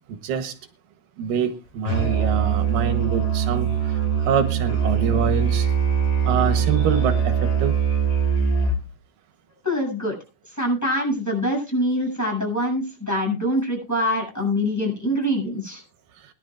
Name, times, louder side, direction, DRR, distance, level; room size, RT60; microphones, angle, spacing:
voice 1, 0.1-0.5 1.2-3.7 4.3-5.7 6.3-7.7, right 6 dB, 85° right, 8 dB, 2.9 m, -25 dB
Musical instrument, 1.8-8.9, right 7 dB, 30° left, 3.7 m, -22 dB
voice 2, 9.6-10.2 10.5-15.8, equal, 5° left, 0 dB, 7.5 m, -24 dB
22.5 x 11.0 x 2.5 m, 0.32 s
omnidirectional pair, 3.8 m